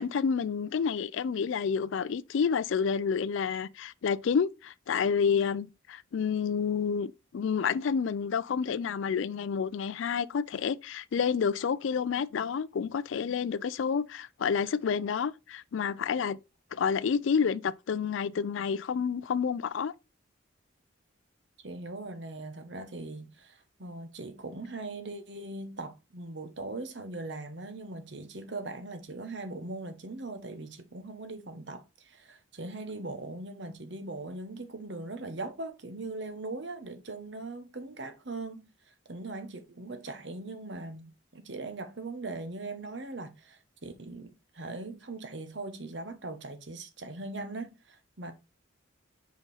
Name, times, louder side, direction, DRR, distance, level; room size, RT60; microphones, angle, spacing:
voice 1, 0.0-16.4 16.7-19.9, left 6 dB, 70° left, 0.4 m, -29 dB
voice 2, 21.6-48.3, right 2 dB, 60° right, 1.1 m, -40 dB
5.2 x 4.8 x 4.0 m
head